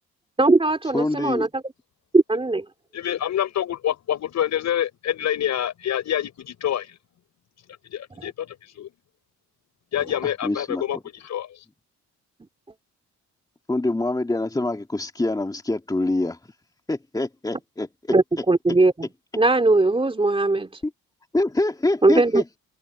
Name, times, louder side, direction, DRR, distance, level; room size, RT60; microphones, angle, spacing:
voice 1, 0.4-1.6 2.1-2.6 18.1-19.1 19.4-20.7 22.0-22.4, right 2 dB, 20° right, 2.8 m, -19 dB
voice 2, 0.9-1.5 10.2-10.8 13.7-16.4 16.9-17.9 20.8-20.9 21.3-22.6, left 2 dB, 10° left, 2.5 m, -25 dB
voice 3, 2.9-6.9 7.9-8.9 9.9-11.6, left 10 dB, 65° left, 6.4 m, -27 dB
cardioid pair, 90°, 30 cm